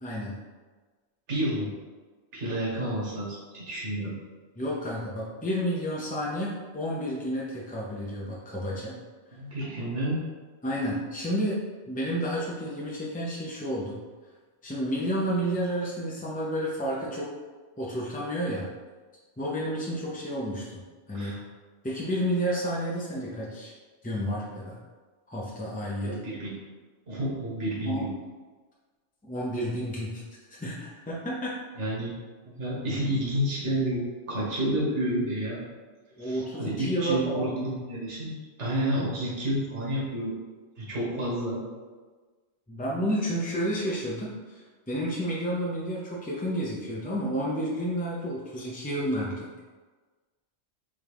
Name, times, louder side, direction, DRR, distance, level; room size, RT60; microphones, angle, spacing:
voice 1, 0.0-0.4 4.6-9.0 10.6-14.0 14.6-17.3 17.8-18.7 19.4-20.8 21.1-21.4 21.8-23.7 24.0-24.8 25.3-26.2 27.9-28.1 29.2-30.2 30.6-31.6 36.2-37.6 41.1-41.2 42.7-49.6, equal, 15° left, -5 dB, 0.3 m, -31 dB
voice 2, 1.3-1.7 2.3-4.1 9.3-10.2 21.1-21.4 26.0-26.5 27.1-28.1 31.8-32.2 32.5-34.0 34.3-35.6 36.2-38.3 38.6-40.3 40.8-41.6, right 1 dB, 80° right, -6 dB, 1.7 m, -30 dB
4.2 x 3.6 x 3.5 m, 1.4 s
omnidirectional pair, 1.2 m